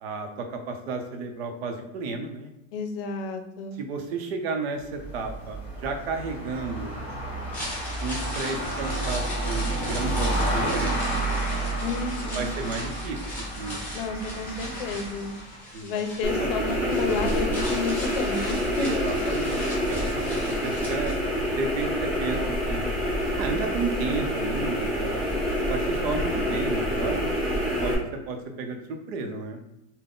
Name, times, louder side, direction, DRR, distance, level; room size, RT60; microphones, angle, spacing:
voice 1, 0.0-2.5 3.7-7.0 8.0-11.0 12.3-13.8 15.7-15.9 16.4-16.5 18.7-21.2 21.6-22.4 22.7-22.8 23.4-25.3 25.7-27.3 27.8-29.6, right 3 dB, 70° right, 5 dB, 0.7 m, -32 dB
voice 2, 2.7-3.8 11.8-12.5 13.9-15.3 15.8-19.0, left 4 dB, 65° left, 6 dB, 0.6 m, -31 dB
sound 1, 4.8-15.4, right 2 dB, 20° left, 1.4 m, -31 dB
sound 2, 7.4-21.5 21.8-21.9, left 1 dB, 5° left, 0.7 m, -39 dB
sound 3, 16.2-27.9, equal, 15° right, 1.1 m, -27 dB
3.7 x 2.2 x 3.7 m, 0.89 s
supercardioid pair, 180°, 31 cm